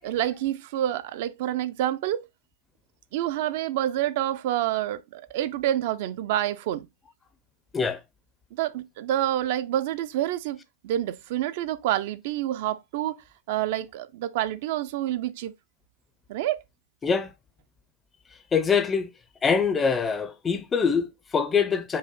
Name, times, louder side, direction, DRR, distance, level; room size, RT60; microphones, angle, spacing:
voice 1, 0.0-2.3 3.1-6.9 8.5-10.6 10.8-13.2 13.5-15.5 16.3-16.6, right 12 dB, 55° right, 0.4 m, -28 dB
voice 2, 18.5-19.1 19.4-22.0, left 6 dB, 15° left, 0.4 m, -24 dB
5.3 x 2.1 x 3.5 m
supercardioid pair, 160°, 0 cm